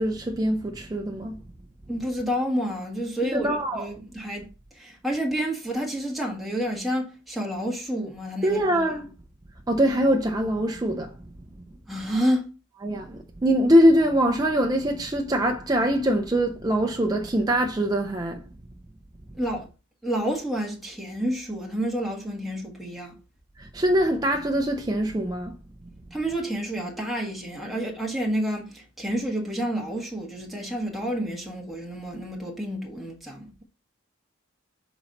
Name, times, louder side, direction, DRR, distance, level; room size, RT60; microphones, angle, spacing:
voice 1, 0.0-1.4 3.3-3.9 8.4-9.1 9.7-11.1 12.8-18.5 23.6-25.6, equal, 20° right, 0.6 m, -23 dB
voice 2, 1.9-4.5 4.7-8.8 11.9-12.5 19.4-19.7 20.0-23.2 26.1-33.5, equal, ahead, 1.4 m, -29 dB
6.2 x 3.9 x 4.1 m
head